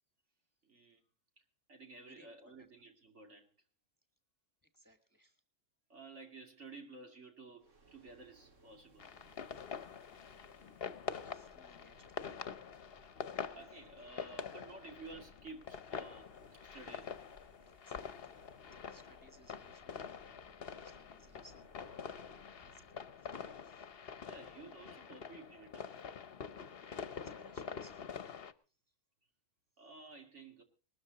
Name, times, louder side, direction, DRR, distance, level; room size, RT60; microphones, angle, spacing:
voice 1, 0.6-1.0 1.7-3.5 5.9-9.1 13.0-13.1 13.5-17.2 24.2-26.0 29.8-30.6, right 3 dB, 70° right, 2.8 m, -53 dB
voice 2, 2.0-2.7 4.6-5.4 11.2-12.5 17.8-23.9 26.7-28.3, right 1 dB, 15° left, 1.5 m, -65 dB
Psycho Transition, 7.6-25.0, right 1 dB, 85° right, 2.5 m, -66 dB
sound 1, 9.0-28.5, left 6 dB, 55° left, 1.1 m, -46 dB
20.0 x 13.0 x 4.0 m
omnidirectional pair, 1.3 m